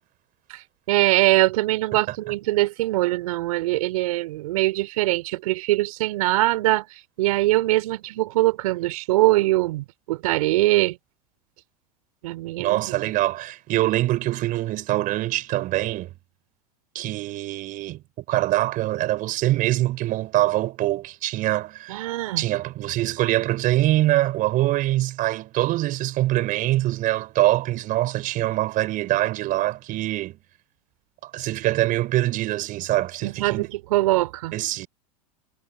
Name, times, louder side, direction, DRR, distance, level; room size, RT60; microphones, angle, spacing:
voice 1, 0.5-11.0 12.2-12.9 21.9-22.4 33.2-34.6, right 18 dB, 65° right, 3.8 m, -22 dB
voice 2, 12.6-16.1 16.9-18.0 18.3-22.0 22.4-30.4 31.2-33.7 34.5-34.9, right 16 dB, 45° right, 4.2 m, -24 dB
hypercardioid pair, 95°, 20 cm